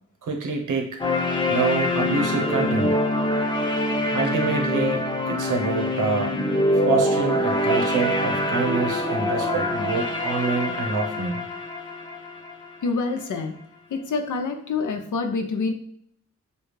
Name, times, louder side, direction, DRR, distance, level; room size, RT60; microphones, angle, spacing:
voice 1, 0.2-1.0 1.5-3.0 4.1-6.3 6.7-11.4, right 4 dB, 85° right, 3 dB, 0.9 m, -26 dB
sound 1, 1.0-13.0, left 1 dB, 15° left, 0.6 m, -24 dB
voice 2, 12.8-13.6 13.9-15.7, left 4 dB, 85° left, 6 dB, 0.7 m, -26 dB
6.7 x 2.3 x 3.2 m, 0.63 s
wide cardioid pair, 170°, 30 cm